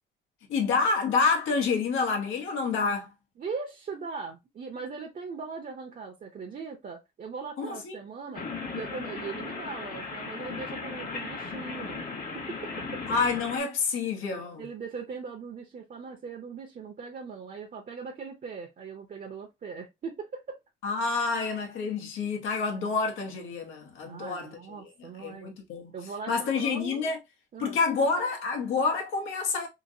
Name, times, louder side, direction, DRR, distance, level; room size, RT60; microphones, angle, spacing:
voice 1, 0.5-3.1 7.6-7.9 13.1-14.6 20.8-25.9 26.3-27.2 27.6-29.7, left 4 dB, 90° left, 0.9 m, -28 dB
voice 2, 3.4-8.5 8.7-12.1 12.3-13.0 14.6-20.6 24.1-25.5 25.9-27.1 27.5-27.8, right 5 dB, 45° right, 0.7 m, -40 dB
sound 1, 8.3-13.6, left 4 dB, 40° left, 1.1 m, -37 dB
2.9 x 2.7 x 2.6 m
cardioid pair, 90°, 20 cm